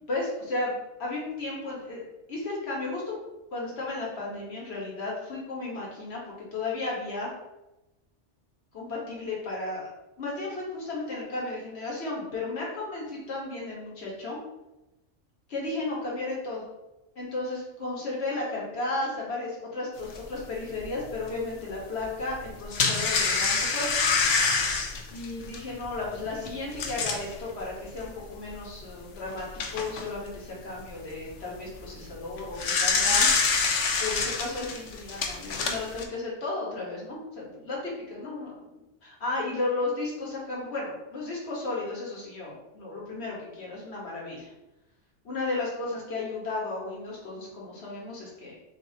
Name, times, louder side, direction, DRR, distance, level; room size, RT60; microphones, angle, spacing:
voice 1, 0.1-2.0 2.3-3.2 3.5-6.2 6.5-7.3 8.7-9.9 10.2-14.4 15.5-16.6 17.1-23.9 25.1-33.3 34.0-44.5 45.2-48.5, left 2 dB, 65° left, -3 dB, 1.5 m, -34 dB
sound 1, 20.2-20.3 20.8-20.9 22.4-27.3 28.0-28.1 28.5-28.6 29.2-30.1 32.3-36.0, left 4 dB, 85° left, 1.0 m, -26 dB
6.3 x 2.7 x 2.8 m, 0.98 s
omnidirectional pair, 1.2 m